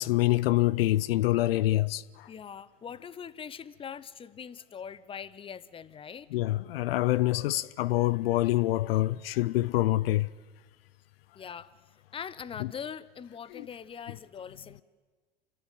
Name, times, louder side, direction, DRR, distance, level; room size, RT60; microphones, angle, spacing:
voice 1, 0.0-2.3 6.3-10.3 12.6-12.7 13.5-13.7, left 16 dB, 65° left, 0.6 m, -26 dB
voice 2, 2.3-6.3 11.3-14.8, left 7 dB, 15° left, 0.8 m, -42 dB
28.0 x 13.5 x 9.2 m
hypercardioid pair, 95°, 31 cm